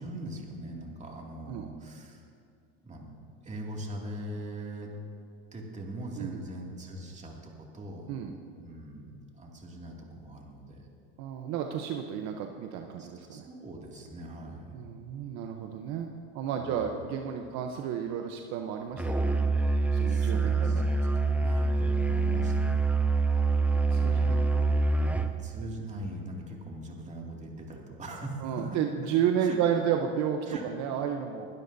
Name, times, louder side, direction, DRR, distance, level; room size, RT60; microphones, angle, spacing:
voice 1, 0.0-2.3 2.8-3.1 3.4-4.9 5.5-10.9 13.0-14.7 16.6-16.9 17.4-17.6 20.1-20.8 21.4-22.8 23.8-24.5 25.4-28.8 29.4-29.6 30.5-30.6, right 1 dB, 25° right, -1 dB, 2.4 m, -41 dB
voice 2, 11.2-13.5 14.7-16.1 16.3-19.4 19.9-20.8 23.5-24.4 24.7-25.3 28.4-31.5, right 8 dB, 60° right, 4 dB, 0.9 m, -32 dB
Musical instrument, 19.0-25.4, right 3 dB, 5° right, 0.7 m, -25 dB
20.5 x 12.0 x 2.7 m, 2.4 s
supercardioid pair, 105°, 31 cm